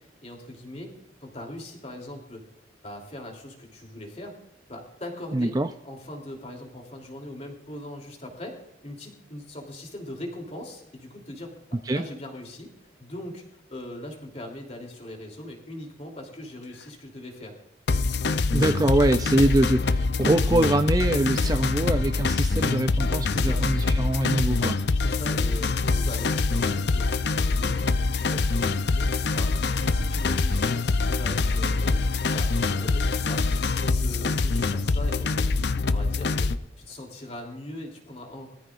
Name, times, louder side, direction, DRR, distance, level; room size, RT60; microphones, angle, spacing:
voice 1, 0.2-0.9 1.2-2.4 2.8-4.4 4.7-5.5 5.8-8.6 8.8-12.7 13.0-13.4 13.7-17.6 23.3-23.6 25.0-27.8 28.2-38.5, left 1 dB, 35° left, 1 dB, 3.2 m, -40 dB
voice 2, 5.3-5.7 11.7-12.0 18.5-24.8, right 1 dB, 20° right, 8 dB, 0.4 m, -24 dB
sound 1, 17.9-36.6, left 3 dB, 65° left, 0.6 m, -24 dB
22.0 x 14.0 x 2.5 m, 0.80 s
head